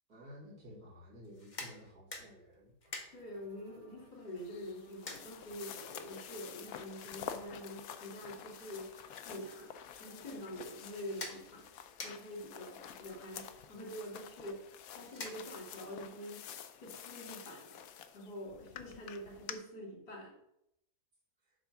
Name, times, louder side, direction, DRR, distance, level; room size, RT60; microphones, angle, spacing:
voice 1, 0.1-2.7, equal, 65° right, -6 dB, 2.9 m, -53 dB
sound 1, 1.2-15.9, left 2 dB, 35° left, 0.9 m, -52 dB
sound 2, 2.8-10.5, right 2 dB, 40° right, 2.7 m, -66 dB
voice 2, 3.1-8.9 9.2-9.7 10.0-11.7 12.0-14.6 14.9-16.5 16.8-17.8 18.1-20.3, equal, 90° left, -2 dB, 3.2 m, -46 dB
sound 3, 4.4-19.5, left 9 dB, 70° left, 1.0 m, -49 dB
7.9 x 3.5 x 5.9 m, 0.79 s
omnidirectional pair, 1.8 m